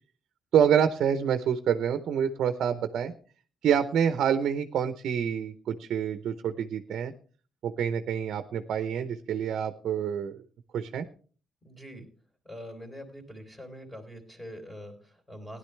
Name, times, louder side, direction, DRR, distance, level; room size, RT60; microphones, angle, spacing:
voice 1, 0.5-3.1 3.6-7.1 7.6-10.3 10.7-11.1, right 8 dB, 70° right, 9 dB, 0.8 m, -27 dB
voice 2, 11.6-12.0 12.4-15.6, equal, 5° left, 3 dB, 3.3 m, -44 dB
16.5 x 11.0 x 3.3 m, 0.40 s
cardioid pair, 90°, 0 cm